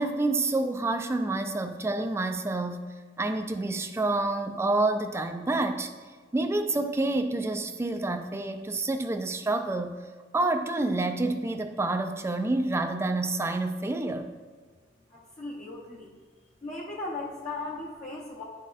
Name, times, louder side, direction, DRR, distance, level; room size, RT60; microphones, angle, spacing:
voice 1, 0.0-5.9 6.3-10.0 10.3-14.3, right 2 dB, 15° right, 8 dB, 0.3 m, -28 dB
voice 2, 15.4-16.1 16.6-18.4, left 2 dB, 40° left, -5 dB, 0.7 m, -37 dB
10.0 x 4.0 x 2.5 m, 1.4 s
head